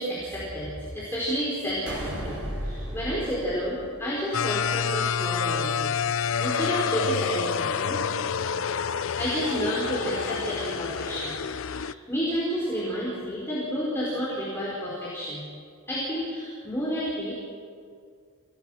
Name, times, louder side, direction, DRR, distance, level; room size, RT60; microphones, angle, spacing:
voice 1, 0.0-8.0 9.1-15.5 15.9-17.3, equal, 10° left, -8 dB, 4.7 m, -30 dB
sound 1, 1.9-4.4, equal, 55° right, 5.3 m, -35 dB
sound 2, 4.3-11.9, left 7 dB, 65° left, 0.5 m, -28 dB
27.0 x 17.5 x 6.5 m, 2.2 s
head